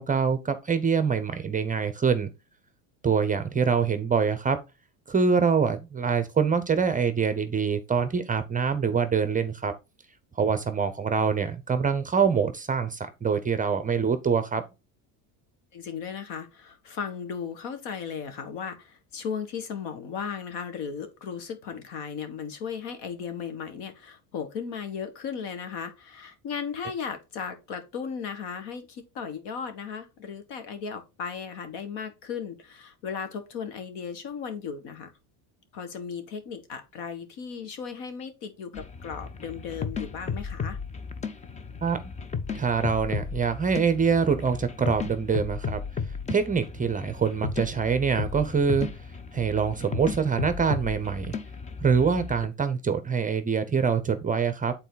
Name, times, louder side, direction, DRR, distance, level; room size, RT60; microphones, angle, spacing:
voice 1, 0.0-2.3 3.0-4.6 5.1-9.7 10.4-14.6 41.8-42.0 42.5-45.8 46.3-48.9 49.3-51.4 51.8-54.7, right 6 dB, 20° right, 0.7 m, -25 dB
voice 2, 15.7-35.1 35.7-40.8, left 6 dB, 65° left, 1.8 m, -36 dB
sound 1, 38.7-52.5, left 5 dB, 15° left, 0.4 m, -35 dB
8.1 x 4.1 x 4.0 m
supercardioid pair, 120°, 44 cm